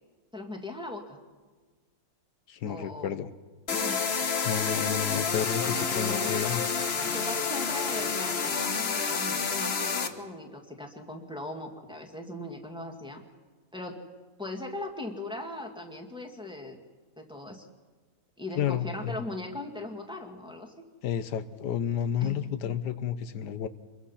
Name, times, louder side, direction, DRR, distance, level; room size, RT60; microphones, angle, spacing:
voice 1, 0.3-1.2 2.7-3.1 3.7-4.3 5.6-13.2 13.7-14.0 14.4-16.8 17.2-17.7 18.4-20.8 22.2-22.7, left 1 dB, 5° right, 1 dB, 2.1 m, -39 dB
voice 2, 2.5-3.3 4.4-6.6 18.6-19.2 21.0-23.7, left 9 dB, 85° left, 12 dB, 1.5 m, -31 dB
sound 1, 3.7-10.1, left 5 dB, 40° left, 1.3 m, -29 dB
26.5 x 22.0 x 5.8 m, 1.4 s
omnidirectional pair, 1.7 m